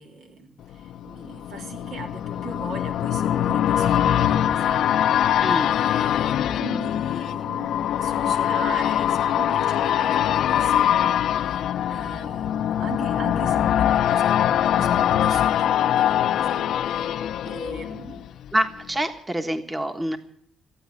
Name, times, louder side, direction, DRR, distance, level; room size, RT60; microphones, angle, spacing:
voice 1, 0.0-18.2, right 3 dB, 80° right, 3 dB, 3.4 m, -39 dB
sound 1, 0.7-18.5 18.9-19.0, left 10 dB, 75° left, 0.6 m, -23 dB
voice 2, 18.5-20.2, right 1 dB, 15° right, 7 dB, 1.3 m, -26 dB
15.5 x 9.2 x 9.6 m, 0.65 s
cardioid pair, 90°, 0 cm